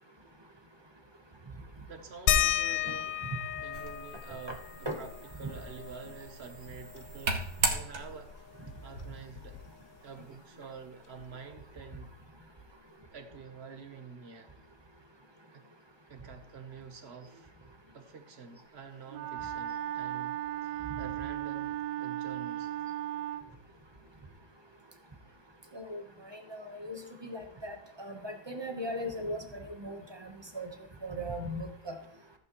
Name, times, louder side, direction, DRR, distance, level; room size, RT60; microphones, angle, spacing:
voice 1, 1.9-3.2 3.6-4.6 5.0-5.1 5.4-8.3 8.8-9.6 10.0-12.1 13.1-14.5 15.5-15.6 16.1-17.5 17.9-22.8, right 5 dB, 45° right, 7 dB, 1.1 m, -48 dB
sound 1, 2.3-7.4 7.8-7.9 8.2-9.9 11.2-11.3 12.0-12.1, left 10 dB, 85° left, 1.4 m, -34 dB
sound 2, 3.7-8.4, right 4 dB, 60° right, 1.8 m, -37 dB
Wind instrument woodwind instrument, 19.1-23.5, right 12 dB, 85° right, 1.3 m, -36 dB
voice 2, 26.3-30.0 30.5-30.7 31.0-32.0, equal, 20° right, 5 dB, 0.8 m, -38 dB
14.0 x 9.1 x 3.0 m, 0.66 s
omnidirectional pair, 1.8 m